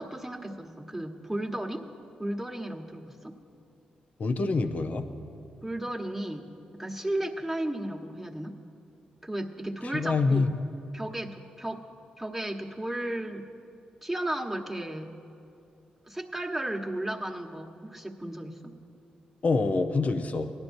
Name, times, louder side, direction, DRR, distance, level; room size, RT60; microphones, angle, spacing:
voice 1, 0.0-1.8 2.2-3.3 5.6-6.5 6.7-8.6 9.2-10.5 10.9-11.8 12.2-13.5 14.0-15.1 16.0-18.7, right 1 dB, 5° right, 0 dB, 1.3 m, -34 dB
voice 2, 4.2-5.1 9.9-10.5 19.4-20.5, left 3 dB, 55° left, 7 dB, 0.8 m, -26 dB
18.5 x 11.5 x 2.7 m, 2.5 s
supercardioid pair, 50°, 3 cm